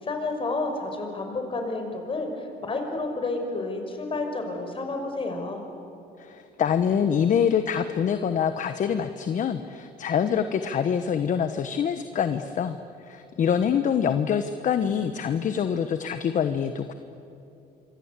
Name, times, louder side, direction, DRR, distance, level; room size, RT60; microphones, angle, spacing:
voice 1, 0.0-5.6, left 2 dB, 30° left, 4 dB, 5.7 m, -30 dB
voice 2, 6.2-16.9, left 7 dB, 50° left, 9 dB, 1.2 m, -25 dB
27.5 x 24.5 x 8.4 m, 2.8 s
cardioid pair, 110°, 17 cm